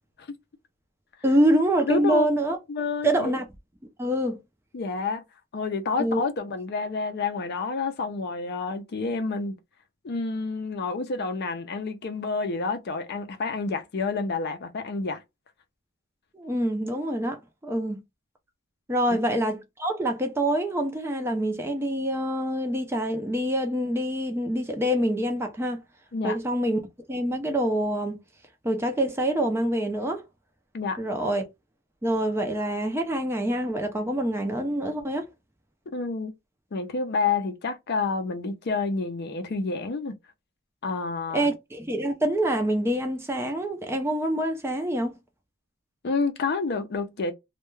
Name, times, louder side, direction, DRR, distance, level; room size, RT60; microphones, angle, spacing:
voice 1, 1.2-2.6 3.0-3.5 4.0-4.4 6.0-6.2 16.3-18.0 18.9-25.8 26.2-26.8 27.1-28.2 28.6-30.2 31.0-31.5 32.0-35.3 41.3-45.2, right 1 dB, 10° right, 0.4 m, -26 dB
voice 2, 1.9-2.3 2.7-3.3 4.7-5.2 5.5-9.5 10.0-15.2 26.1-26.4 30.7-31.0 35.9-36.3 36.7-40.1 40.8-41.5 46.0-47.3, left 4 dB, 50° left, 0.4 m, -29 dB
2.2 x 2.2 x 3.0 m
head